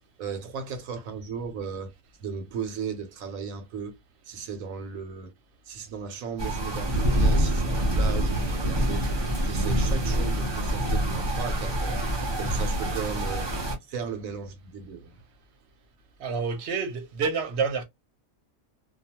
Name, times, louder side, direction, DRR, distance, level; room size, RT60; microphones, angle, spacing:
voice 1, 0.2-1.9 2.2-3.9 4.2-5.3 5.7-9.1 9.4-12.0 12.4-13.5 13.9-15.2, right 6 dB, 80° right, 1.1 m, -36 dB
sound 1, 6.4-13.8, right 1 dB, 25° right, 0.6 m, -26 dB
voice 2, 16.2-17.8, right 5 dB, 55° right, 0.9 m, -28 dB
2.4 x 2.3 x 2.8 m
omnidirectional pair, 1.4 m